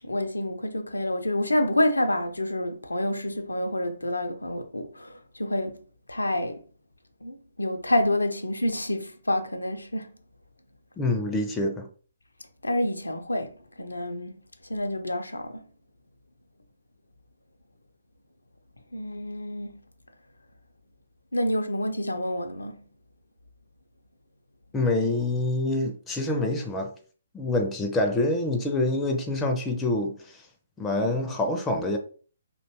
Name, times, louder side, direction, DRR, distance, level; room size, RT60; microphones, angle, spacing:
voice 1, 0.0-5.8 6.1-6.6 7.2-10.1 12.6-14.4 14.7-15.7 18.9-19.8 21.3-22.8, left 1 dB, 80° left, 0.4 m, -28 dB
voice 2, 11.0-11.9 24.7-26.9 27.3-30.4 30.8-32.0, left 2 dB, 10° left, 0.4 m, -26 dB
2.6 x 2.2 x 2.7 m
figure-of-eight pair, 130°, 0 cm